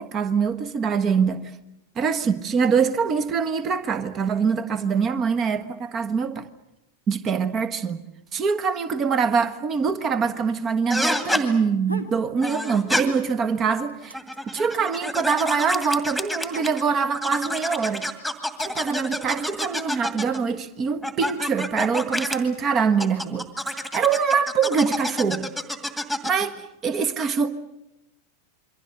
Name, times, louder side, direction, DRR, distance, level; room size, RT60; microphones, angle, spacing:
voice 1, 0.0-1.5 1.9-6.5 7.1-8.0 8.3-14.2 14.5-18.1 18.6-23.5 23.9-25.5 26.2-27.5, right 6 dB, 30° right, 1.4 m, -24 dB
sound 1, 10.9-11.4 12.4-13.0 14.0-16.8 17.1-20.4 21.0-22.4 23.0-26.5, left 1 dB, 5° right, 2.3 m, -28 dB
sound 2, 11.8-12.2 12.6-13.3 13.6-17.2 18.0-18.6, right 1 dB, 85° right, 1.8 m, -40 dB
28.0 x 23.5 x 6.8 m
figure-of-eight pair, 90°, 0 cm